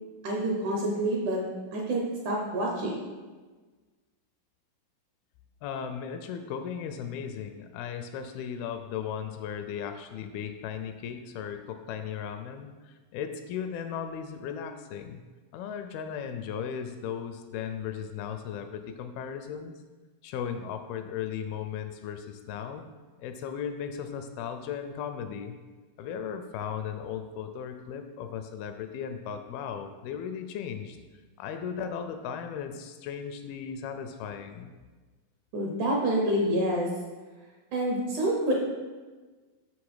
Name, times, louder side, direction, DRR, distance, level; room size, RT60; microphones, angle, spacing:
voice 1, 0.2-1.4 1.7-3.0 35.5-36.9 37.7-38.5, right 1 dB, 70° right, -1 dB, 2.0 m, -27 dB
voice 2, 5.6-15.2 15.5-19.7 20.2-22.9 23.2-25.6 26.0-31.0 31.4-34.7, left 7 dB, 80° left, 7 dB, 2.3 m, -36 dB
7.1 x 6.4 x 4.8 m, 1.3 s
omnidirectional pair, 4.5 m